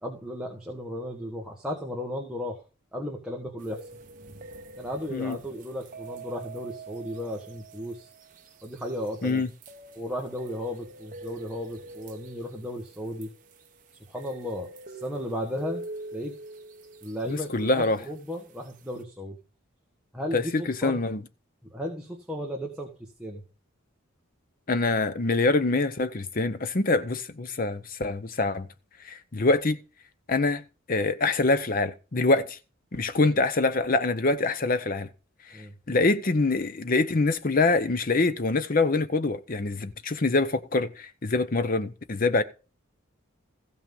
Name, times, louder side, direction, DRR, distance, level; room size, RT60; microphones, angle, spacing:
voice 1, 0.0-2.6 2.9-3.9 4.8-8.1 8.6-9.4 9.9-13.3 14.1-15.8 16.1-16.3 17.0-19.4 20.1-21.0 21.7-22.9 23.2-23.4 35.5-35.7, equal, 5° right, 1.5 m, -35 dB
sound 1, 3.6-19.0, right 3 dB, 35° right, 1.1 m, -45 dB
voice 2, 17.3-18.0 20.3-21.2 24.7-28.7 29.0-29.8 30.3-30.6 30.9-32.6 32.9-35.1 35.5-42.4, left 3 dB, 40° left, 0.7 m, -25 dB
15.0 x 6.0 x 5.4 m
head